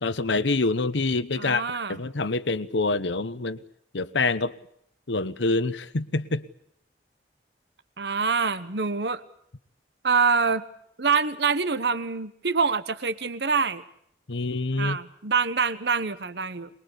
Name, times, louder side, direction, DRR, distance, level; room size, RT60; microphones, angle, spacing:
voice 1, 0.0-1.6 1.9-3.6 3.9-4.6 5.1-6.4 14.3-15.0, left 3 dB, 90° left, 14 dB, 1.0 m, -26 dB
voice 2, 1.4-2.0 8.0-9.2 10.0-10.6 11.0-13.8 14.8-16.7, right 5 dB, 70° right, 13 dB, 1.1 m, -25 dB
23.5 x 21.5 x 8.3 m, 0.70 s
head